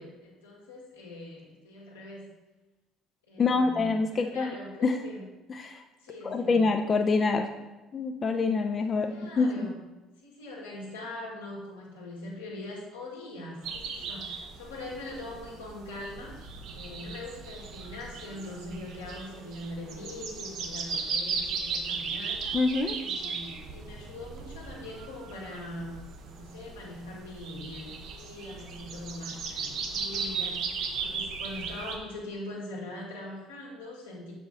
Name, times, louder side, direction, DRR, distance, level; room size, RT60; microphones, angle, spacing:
voice 1, 0.0-2.3 3.3-5.2 6.0-6.7 9.1-9.8 10.2-16.4 16.7-22.4 23.0-30.6 31.0-34.3, left 1 dB, 90° left, -4 dB, 1.5 m, -42 dB
voice 2, 3.4-4.5 4.8-5.0 5.5-5.8 6.2-7.5 7.9-9.7 22.5-23.0, left 4 dB, 40° left, 5 dB, 0.4 m, -26 dB
sound 1, 13.6-32.0, right 5 dB, 60° right, 0.8 m, -37 dB
7.1 x 5.0 x 3.6 m, 1.1 s
hypercardioid pair, 55°, 0 cm